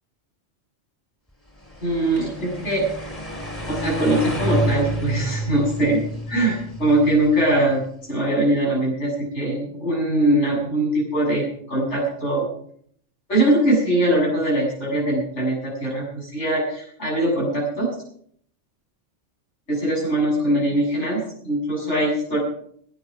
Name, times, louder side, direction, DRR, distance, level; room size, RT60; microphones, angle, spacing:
sound 1, 1.6-7.7, right 1 dB, 10° left, 3.1 m, -29 dB
voice 1, 1.8-3.1 3.7-6.0 6.3-7.8 8.1-12.5 13.3-17.9 19.7-22.4, right 1 dB, 85° left, -3 dB, 7.7 m, -22 dB
17.0 x 10.0 x 6.0 m, 0.64 s
omnidirectional pair, 1.2 m